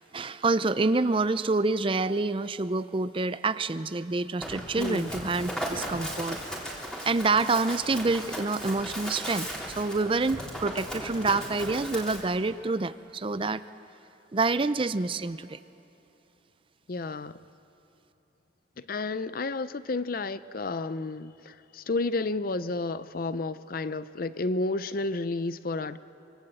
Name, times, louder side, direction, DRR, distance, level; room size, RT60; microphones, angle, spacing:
voice 1, 0.1-6.4 7.1-9.5 9.8-13.6 14.3-15.6, right 3 dB, 30° right, 14 dB, 0.5 m, -27 dB
Run, 4.4-12.2, equal, 5° left, 3.6 m, -36 dB
voice 2, 4.8-5.1 16.9-17.3 18.8-26.0, left 3 dB, 50° left, 14 dB, 0.6 m, -31 dB
27.5 x 25.0 x 7.8 m, 3.0 s
head